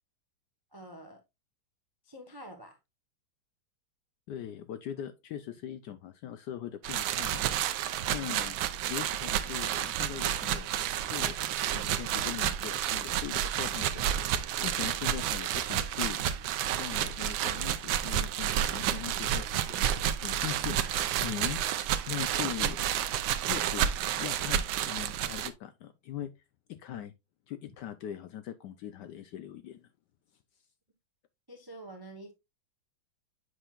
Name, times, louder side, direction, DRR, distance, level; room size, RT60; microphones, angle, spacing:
voice 1, 0.7-1.2 2.0-2.8 31.5-32.3, right 1 dB, 30° right, 0.4 m, -47 dB
voice 2, 4.3-7.5 8.1-8.6 8.9-10.7 11.0-11.4 11.7-16.2 16.7-21.6 22.1-22.8 23.5-26.3 26.7-27.1 27.5-29.9, left 11 dB, 75° left, 1.0 m, -41 dB
sound 1, 6.8-25.5, right 10 dB, 75° right, 1.4 m, -30 dB
7.9 x 5.8 x 2.4 m
omnidirectional pair, 2.3 m